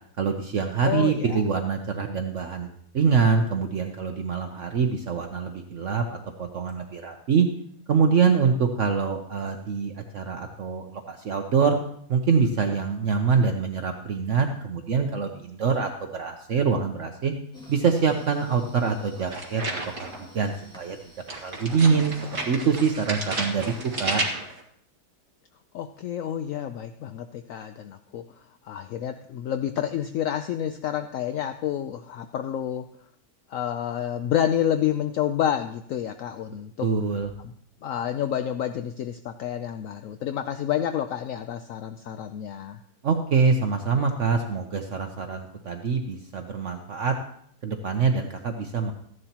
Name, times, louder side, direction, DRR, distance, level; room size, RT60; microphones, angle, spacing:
voice 1, 0.2-2.7 2.9-7.5 7.9-11.8 12.1-17.3 17.7-21.0 21.4-22.1 22.5-23.7 24.0-24.2 36.8-37.3 43.0-47.1 47.6-48.9, right 5 dB, 55° right, 4 dB, 1.1 m, -25 dB
voice 2, 0.8-1.4 25.7-28.2 28.6-32.9 33.5-36.9 37.4-37.5 37.8-42.8, left 10 dB, 70° left, 8 dB, 0.9 m, -29 dB
sound 1, 17.5-24.2, left 1 dB, 5° left, 2.0 m, -48 dB
sound 2, 19.3-20.3 21.3-24.6, right 2 dB, 35° right, 2.0 m, -32 dB
15.0 x 11.0 x 2.9 m, 0.66 s
omnidirectional pair, 1.7 m